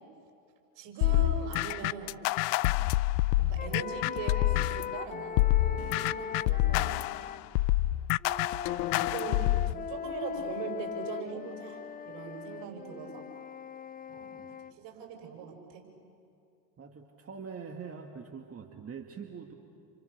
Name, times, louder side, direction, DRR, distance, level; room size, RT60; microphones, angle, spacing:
voice 1, 0.8-2.2 3.4-7.0 8.9-13.2 14.1-14.3 14.8-15.8, right 6 dB, 60° right, 3 dB, 6.4 m, -41 dB
sound 1, 1.0-4.9 5.4-9.7, left 16 dB, 65° left, 0.7 m, -27 dB
sound 2, 3.6-7.4 8.2-14.7, left 8 dB, 20° left, 0.6 m, -40 dB
voice 2, 16.8-19.5, right 6 dB, 30° right, 3 dB, 2.1 m, -44 dB
29.5 x 28.0 x 6.8 m, 2.6 s
hypercardioid pair, 85°, 50 cm